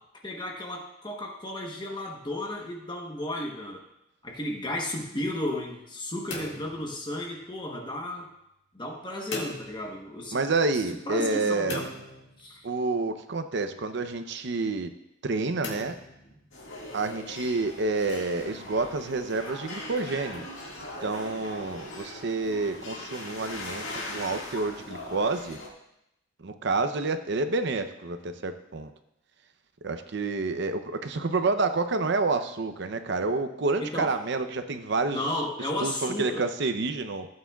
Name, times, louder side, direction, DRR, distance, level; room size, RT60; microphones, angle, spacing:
voice 1, 0.2-3.8 4.2-8.3 8.7-10.4 11.0-11.9 12.4-12.7 33.8-34.1 35.1-36.5, left 1 dB, 25° left, 0 dB, 1.1 m, -33 dB
sound 1, 6.3-7.6 9.3-10.3 11.7-12.9 15.6-16.8, left 1 dB, 65° left, 2.0 m, -40 dB
voice 2, 10.3-11.8 12.6-14.9 15.2-16.0 16.9-20.5 21.0-23.9 24.1-25.6 26.4-28.9 29.8-35.2 35.8-37.3, right 3 dB, 65° right, 9 dB, 0.7 m, -28 dB
sound 2, 16.5-25.7, left 2 dB, 85° left, 1.9 m, -40 dB
15.0 x 8.7 x 2.4 m, 0.84 s
head